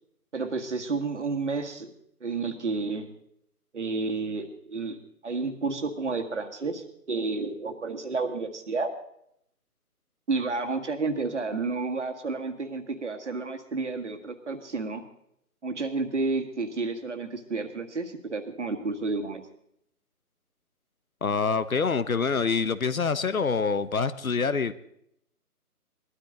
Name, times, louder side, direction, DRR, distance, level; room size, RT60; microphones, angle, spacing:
voice 1, 0.3-1.9 2.2-3.1 3.7-8.9 10.3-15.0 15.6-19.4, right 3 dB, 50° right, 6 dB, 1.8 m, -31 dB
voice 2, 21.2-24.7, left 5 dB, 65° left, 14 dB, 1.0 m, -26 dB
21.0 x 12.5 x 3.8 m, 0.73 s
figure-of-eight pair, 165°, 46 cm